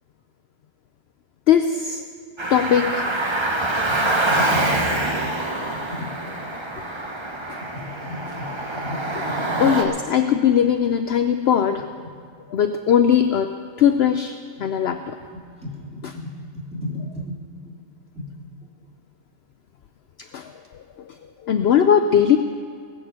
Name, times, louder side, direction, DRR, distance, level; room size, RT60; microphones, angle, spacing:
voice 1, 1.5-2.0 2.5-3.1 9.6-11.8 12.5-13.5 13.8-15.2 20.3-20.5 21.1-21.2 21.4-22.4, left 8 dB, 60° left, 8 dB, 0.8 m, -19 dB
Car, 2.4-9.8, right 2 dB, 25° right, 1.2 m, -25 dB
voice 2, 3.9-4.7 5.7-6.1 7.6-9.7 14.6-14.7 15.3-17.4 17.7-17.8 18.2-18.3, left 1 dB, 5° right, -6 dB, 3.4 m, -34 dB
20.5 x 6.9 x 8.2 m, 2.3 s
omnidirectional pair, 1.3 m